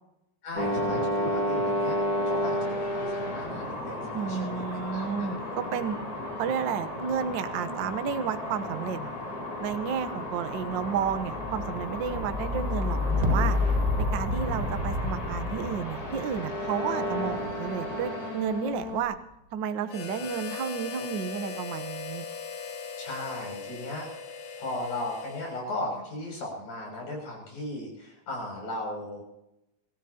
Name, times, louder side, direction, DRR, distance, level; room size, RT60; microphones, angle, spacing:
voice 1, 0.4-2.0 2.3-5.5 9.0-9.1 23.0-29.2, left 1 dB, 85° left, -1 dB, 8.1 m, -37 dB
sound 1, 0.6-19.0, left 1 dB, 30° left, 2.9 m, -33 dB
sound 2, 1.8-2.5 2.7-17.8 18.5-19.1, left 2 dB, 25° right, 0.9 m, -33 dB
voice 2, 4.1-6.0 6.4-9.0 9.6-13.6 14.0-19.2 19.5-22.2, right 7 dB, 75° right, 9 dB, 1.0 m, -32 dB
Harmonica, 19.9-25.9, left 6 dB, 60° left, 1.3 m, -39 dB
25.5 x 14.5 x 2.8 m, 0.86 s
omnidirectional pair, 3.4 m